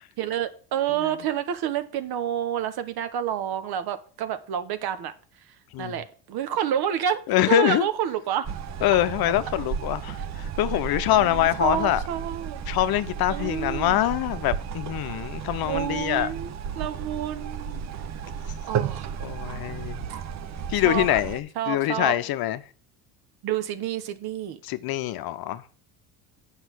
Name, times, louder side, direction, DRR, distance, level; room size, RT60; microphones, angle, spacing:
voice 1, 0.2-5.1 5.8-7.2 7.5-8.6 11.1-12.6 13.3-14.0 15.6-17.8 18.7-19.2 20.8-21.2 21.5-22.2 23.4-24.6, right 10 dB, 55° right, 1.2 m, -29 dB
voice 2, 7.3-7.9 8.8-12.0 12.7-16.3 19.2-20.1 20.7-22.6 24.6-25.6, left 14 dB, 55° left, 0.8 m, -24 dB
sound 1, 8.4-21.4, right 7 dB, 35° right, 0.8 m, -34 dB
8.1 x 5.6 x 6.1 m
supercardioid pair, 90°, 45 cm